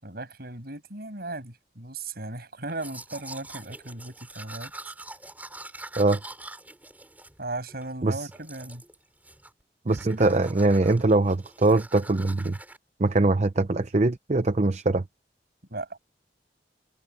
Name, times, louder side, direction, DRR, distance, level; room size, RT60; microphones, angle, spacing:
voice 1, 0.0-4.7 7.4-8.8 15.7-16.0, right 2 dB, 60° right, 6.8 m, -37 dB
Domestic sounds home sounds, 2.7-7.9 8.3-9.0 9.2-9.6 9.9-12.8, right 2 dB, 10° right, 4.7 m, -44 dB
voice 2, 9.9-12.6 13.0-15.0, right 2 dB, 40° right, 0.7 m, -22 dB
head